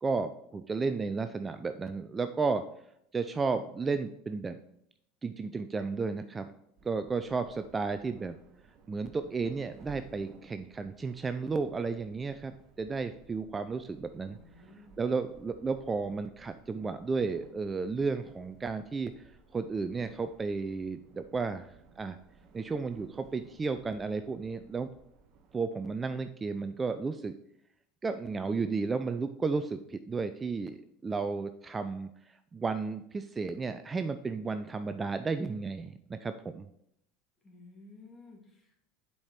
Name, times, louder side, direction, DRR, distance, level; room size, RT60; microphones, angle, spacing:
voice 1, 0.0-2.6 3.1-4.6 5.2-6.5 6.8-8.4 8.9-14.4 15.0-19.2 19.5-21.7 22.0-22.2 22.5-24.9 25.5-27.3 28.0-36.7, right 4 dB, 20° right, 10 dB, 0.4 m, -33 dB
sound 1, 6.8-25.6, right 4 dB, 50° right, 0.9 m, -58 dB
voice 2, 14.3-15.1 37.4-38.8, left 3 dB, 25° left, 0 dB, 2.6 m, -54 dB
7.2 x 4.9 x 4.4 m, 0.74 s
hypercardioid pair, 85°, 0 cm